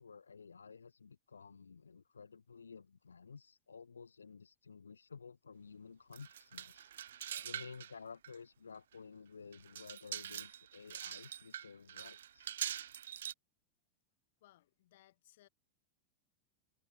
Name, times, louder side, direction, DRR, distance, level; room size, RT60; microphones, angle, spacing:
voice 1, 0.0-6.9 7.4-12.6, left 5 dB, 75° left, 0.6 m, -53 dB
sound 1, 6.1-7.9 8.2-8.3 8.9-9.0 9.5-13.3, right 10 dB, 65° right, 0.5 m, -44 dB
voice 2, 14.4-15.5, left 15 dB, 55° left, 2.5 m, -65 dB
figure-of-eight pair, 90°, 0 cm